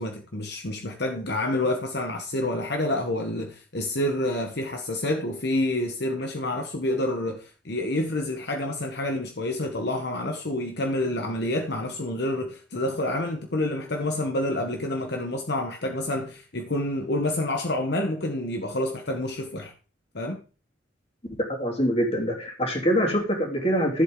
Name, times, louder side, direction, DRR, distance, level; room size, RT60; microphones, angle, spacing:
voice 1, 0.0-19.7 20.1-20.4, left 1 dB, 65° left, 1.3 m, -28 dB
voice 2, 21.6-24.0, equal, 35° left, 3.3 m, -24 dB
14.0 x 7.8 x 3.9 m
head